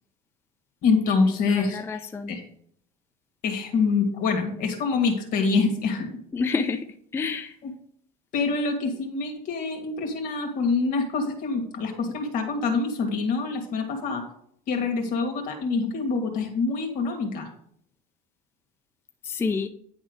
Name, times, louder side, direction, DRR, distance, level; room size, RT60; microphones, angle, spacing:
voice 1, 0.8-2.0 2.3-2.4 3.4-6.1 7.6-7.7 8.3-14.2 14.7-17.5, left 4 dB, 50° left, 3 dB, 2.0 m, -25 dB
voice 2, 1.5-2.3 6.3-6.9 7.1-7.6 19.2-19.7, left 4 dB, 15° left, 6 dB, 0.5 m, -28 dB
10.0 x 3.6 x 6.4 m, 0.65 s
cardioid pair, 135°, 18 cm